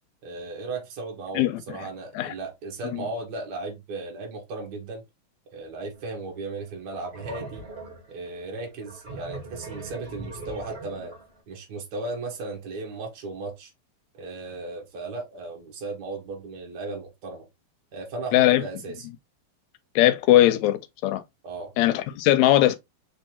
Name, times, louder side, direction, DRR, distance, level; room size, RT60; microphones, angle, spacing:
voice 1, 0.2-5.0 5.5-7.6 8.1-11.1 11.5-13.7 14.1-17.4 17.9-19.0 21.4-21.7, right 3 dB, 65° right, 1.0 m, -36 dB
voice 2, 1.4-1.8 2.1-2.3 2.9-3.0 18.3-18.7 20.0-21.2 21.8-22.8, left 14 dB, 80° left, 1.7 m, -20 dB
sound 1, 5.9-6.1 6.6-11.4, right 2 dB, 35° right, 0.9 m, -40 dB
4.6 x 3.2 x 2.8 m
omnidirectional pair, 3.6 m